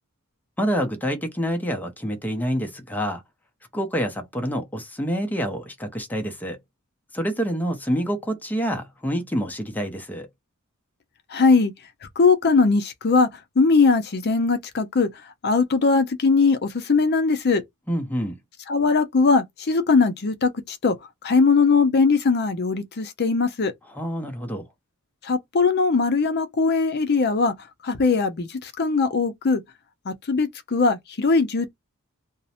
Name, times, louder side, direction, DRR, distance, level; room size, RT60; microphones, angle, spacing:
voice 1, 0.6-3.2 3.7-6.6 7.1-10.3 17.9-18.4 23.9-24.7, equal, 10° left, 0.6 m, -27 dB
voice 2, 11.3-11.7 12.2-13.3 13.6-15.1 15.4-17.6 18.7-20.9 21.2-23.7 25.3-27.5 27.8-29.6 30.1-31.7, left 4 dB, 50° left, 0.6 m, -20 dB
2.5 x 2.0 x 2.8 m
head